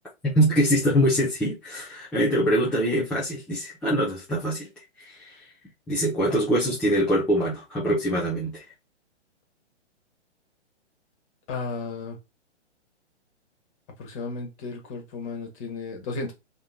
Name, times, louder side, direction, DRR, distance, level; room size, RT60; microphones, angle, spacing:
voice 1, 0.2-4.7 5.0-5.5 5.9-8.6, equal, 5° left, 0.5 m, -24 dB
voice 2, 11.5-12.2 14.0-16.3, left 3 dB, 30° left, 1.4 m, -34 dB
3.5 x 3.0 x 3.5 m
figure-of-eight pair, 125°, 35 cm